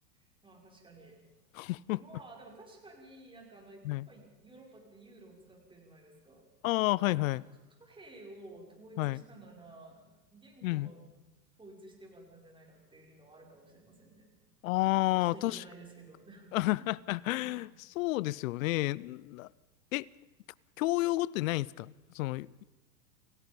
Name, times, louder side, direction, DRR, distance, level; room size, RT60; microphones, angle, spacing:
voice 1, 0.2-1.2 1.9-6.4 7.0-7.3 7.8-11.1 11.6-14.3 15.1-16.9 17.3-17.7, right 2 dB, 10° right, 5.8 m, -53 dB
voice 2, 1.5-2.0 3.8-4.1 6.6-7.4 9.0-9.2 10.6-10.9 14.6-15.6 16.5-17.7 18.0-19.5 19.9-20.1 20.8-22.6, left 18 dB, 55° left, 0.6 m, -30 dB
28.5 x 17.0 x 5.4 m
hypercardioid pair, 110°, 50 cm